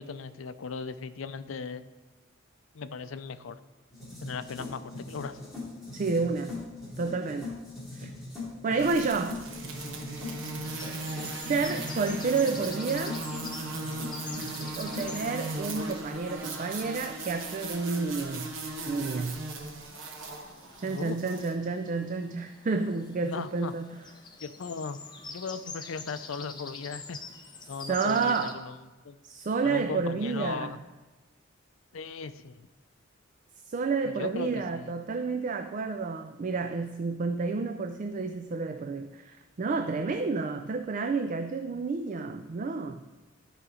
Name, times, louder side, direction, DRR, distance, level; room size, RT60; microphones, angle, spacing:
voice 1, 0.0-1.8 2.7-3.6 4.2-5.4 20.8-21.2 23.2-23.7 24.4-25.0 25.3-27.2 27.7-28.8 29.0-29.2 29.6-30.8 31.9-32.6 34.0-34.9, left 5 dB, 75° left, 12 dB, 0.5 m, -37 dB
sound 1, 3.9-15.1, left 3 dB, ahead, 2.9 m, -41 dB
voice 2, 5.9-6.6 7.0-7.6 7.9-8.1 8.6-9.5 11.5-13.2 14.8-18.5 18.9-19.4 20.8-24.0 27.9-28.6 29.2-30.8 33.7-43.0, right 4 dB, 40° right, 7 dB, 0.4 m, -30 dB
sound 2, 8.8-21.5, right 2 dB, 70° right, 1.1 m, -38 dB
sound 3, 9.5-28.5, left 4 dB, 20° left, 0.7 m, -47 dB
12.5 x 5.0 x 5.0 m, 1.2 s
head